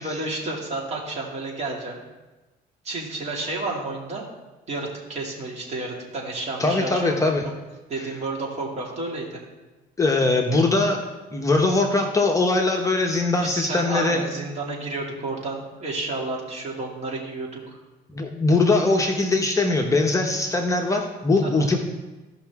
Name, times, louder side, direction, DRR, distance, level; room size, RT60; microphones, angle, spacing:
voice 1, 0.0-2.0 2.8-4.3 4.7-7.3 7.9-9.4 13.4-17.8 21.4-21.7, right 2 dB, 40° right, -2 dB, 2.5 m, -31 dB
voice 2, 6.6-7.4 10.0-11.1 11.3-14.2 18.1-21.8, left 2 dB, 20° left, 1 dB, 0.9 m, -21 dB
15.5 x 5.7 x 3.6 m, 1.1 s
cardioid pair, 110°, 17 cm